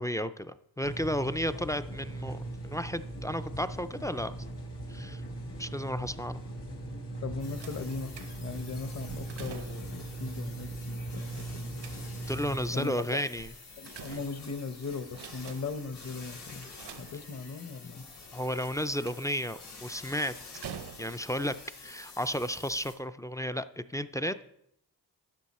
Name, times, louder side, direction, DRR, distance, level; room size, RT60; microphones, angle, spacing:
voice 1, 0.0-4.3 4.9-5.2 5.6-6.4 12.2-13.5 14.1-14.2 18.3-20.3 21.0-24.4, equal, 10° left, 13 dB, 0.3 m, -33 dB
sound 1, 0.8-12.7, right 2 dB, 90° left, 1.4 m, -39 dB
voice 2, 7.2-8.1 8.4-11.7 12.7-13.0 13.8-16.7 17.0-18.0, left 4 dB, 40° left, 11 dB, 0.9 m, -38 dB
sound 2, 7.4-22.9, left 4 dB, 70° left, 3.8 m, -49 dB
sound 3, 7.6-8.6 9.1-10.0 11.3-12.4 13.4-14.7 15.1-15.9 16.6-17.6 18.6-19.4 20.5-21.4 22.2-22.3 22.7-22.8, right 8 dB, 75° right, 0.7 m, -47 dB
11.5 x 5.6 x 4.2 m, 0.75 s
cardioid pair, 60°, 41 cm